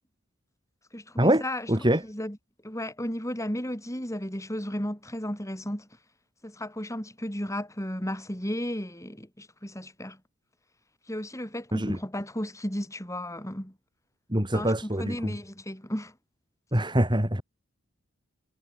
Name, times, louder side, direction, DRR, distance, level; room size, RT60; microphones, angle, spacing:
voice 1, 0.9-1.7 2.0-2.4 2.6-5.9 6.4-10.2 11.1-13.7 14.5-16.1, equal, 15° left, 7.6 m, -34 dB
voice 2, 1.7-2.0 11.7-12.0 14.3-15.4 16.7-17.4, right 1 dB, 20° right, 4.4 m, -24 dB
head